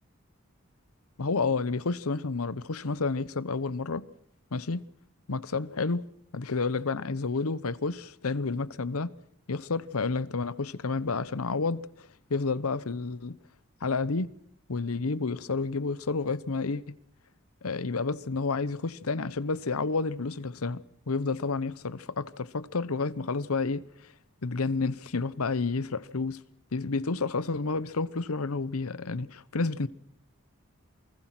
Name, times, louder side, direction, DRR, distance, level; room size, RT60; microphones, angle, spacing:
voice 1, 1.2-4.0 4.5-4.8 5.3-6.0 6.3-9.1 9.5-13.4 13.8-14.3 14.7-17.0 17.6-24.1 24.4-26.4 26.7-29.9, left 4 dB, 85° left, 0.9 m, -30 dB
28.5 x 20.0 x 6.0 m
head